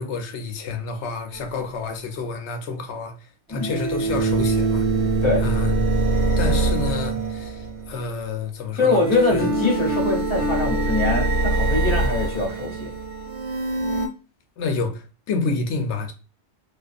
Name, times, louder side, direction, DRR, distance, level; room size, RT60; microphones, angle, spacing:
voice 1, 0.0-3.1 3.5-4.9 5.4-5.8 6.4-9.0 9.3-9.5 14.6-16.1, left 4 dB, 85° left, 0.9 m, -29 dB
sound 1, 1.3-1.4 3.5-8.0 8.8-14.1, right 3 dB, 80° right, 0.9 m, -23 dB
voice 2, 8.7-12.9, left 3 dB, 30° left, 1.0 m, -23 dB
Piano, 9.4-11.8, left 5 dB, 5° right, 0.6 m, -30 dB
2.4 x 2.3 x 2.4 m
omnidirectional pair, 1.1 m